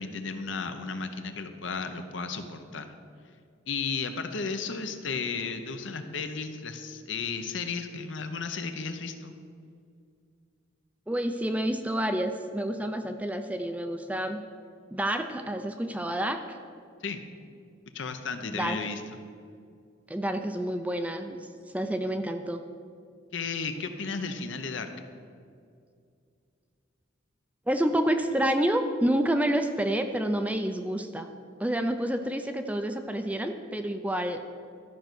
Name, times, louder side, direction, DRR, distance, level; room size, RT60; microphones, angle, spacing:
voice 1, 0.0-2.9 3.7-9.4 17.0-17.2 17.9-19.0 23.3-24.9, left 4 dB, 70° left, 7 dB, 0.8 m, -34 dB
voice 2, 11.1-14.4 14.9-16.6 18.5-18.8 20.1-21.5 21.7-22.6 27.7-31.3 31.6-34.4, right 1 dB, 5° right, 7 dB, 0.4 m, -28 dB
12.5 x 5.2 x 6.2 m, 2.3 s
head